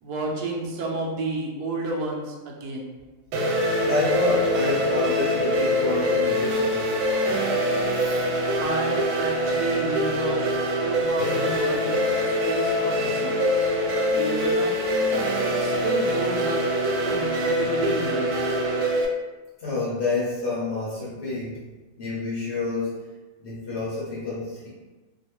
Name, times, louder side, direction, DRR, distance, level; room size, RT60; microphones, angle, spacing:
voice 1, 0.0-2.9 8.6-10.5 10.8-13.4 14.1-14.8 15.4-16.7 17.1-18.4, right 2 dB, 70° right, -1 dB, 1.0 m, -31 dB
sound 1, 3.3-19.1, equal, 90° right, 1.4 m, -24 dB
voice 2, 3.8-7.0 7.9-8.2 17.0-17.2 19.6-21.6 22.0-23.0 23.4-24.7, left 2 dB, 65° left, -7 dB, 0.6 m, -28 dB
3.0 x 2.4 x 2.8 m, 1.2 s
omnidirectional pair, 2.1 m